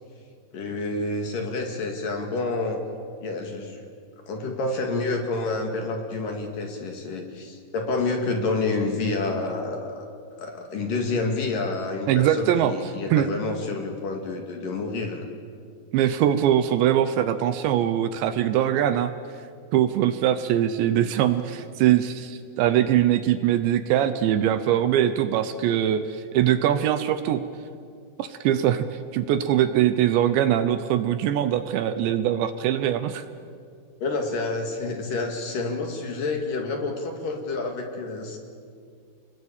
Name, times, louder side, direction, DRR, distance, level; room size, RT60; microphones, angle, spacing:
voice 1, 0.5-2.8 3.2-3.9 4.3-10.1 10.4-15.2 34.0-38.4, left 3 dB, 50° left, 3 dB, 3.2 m, -28 dB
voice 2, 12.1-12.7 13.1-13.3 15.9-19.1 19.7-27.4 28.2-33.2, right 11 dB, 75° right, 11 dB, 2.9 m, -22 dB
29.5 x 21.0 x 8.8 m, 2.3 s
omnidirectional pair, 5.6 m